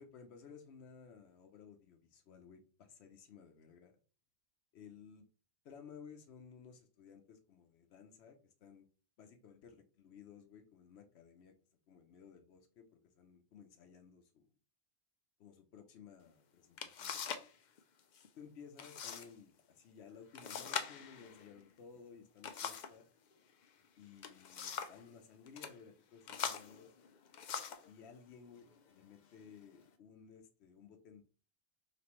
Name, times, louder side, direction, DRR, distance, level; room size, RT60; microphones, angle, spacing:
voice 1, 0.0-4.0 4.7-5.3 5.6-8.9 9.2-11.5 11.9-14.5 15.4-17.3 18.4-23.1 24.0-26.9 27.8-31.2, left 6 dB, 80° left, 4 dB, 1.0 m, -57 dB
sound 1, 16.3-16.4 16.8-17.5 17.8-18.3 18.8-19.3 19.6-19.7 20.4-23.0 24.0-25.0 25.5-25.7 26.3-27.9 28.7-28.8 29.4-29.9, left 7 dB, 55° left, 0.5 m, -43 dB
5.0 x 3.0 x 3.0 m, 0.36 s
omnidirectional pair, 1.1 m